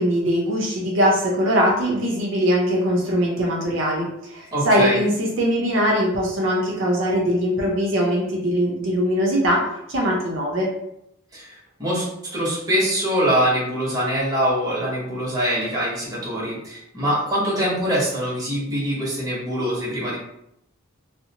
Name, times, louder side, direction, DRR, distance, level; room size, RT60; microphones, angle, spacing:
voice 1, 0.0-9.6 9.9-10.7, equal, 70° right, -2 dB, 0.6 m, -21 dB
voice 2, 4.5-5.0 11.3-20.2, equal, 20° right, -7 dB, 0.9 m, -23 dB
2.5 x 2.0 x 2.8 m, 0.79 s
head